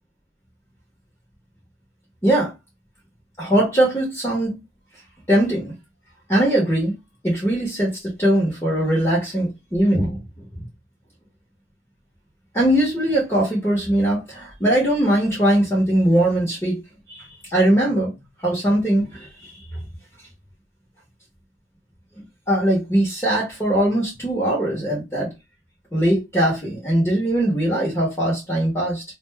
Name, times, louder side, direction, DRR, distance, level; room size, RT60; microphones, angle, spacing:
voice 1, 3.4-4.5 5.3-5.7 6.3-6.9 7.2-10.2 12.5-16.8 17.1-18.1 18.4-19.8 22.5-25.3 25.9-29.0, right 1 dB, 15° left, 0.8 m, -20 dB
2.5 x 2.1 x 3.2 m
head